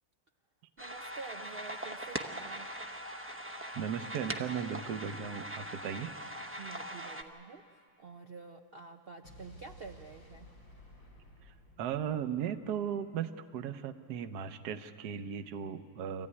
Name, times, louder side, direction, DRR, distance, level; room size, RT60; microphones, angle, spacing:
sound 1, 0.8-7.2, right 1 dB, 15° right, 0.4 m, -41 dB
voice 1, 0.8-2.7 6.6-10.5, right 5 dB, 85° right, 5 dB, 0.5 m, -48 dB
voice 2, 3.7-6.1 11.5-16.3, right 8 dB, 65° right, 9 dB, 1.3 m, -37 dB
Explosion, 9.2-13.3, left 1 dB, 80° left, 4.5 m, -56 dB
25.5 x 15.0 x 9.7 m, 2.2 s
omnidirectional pair, 2.0 m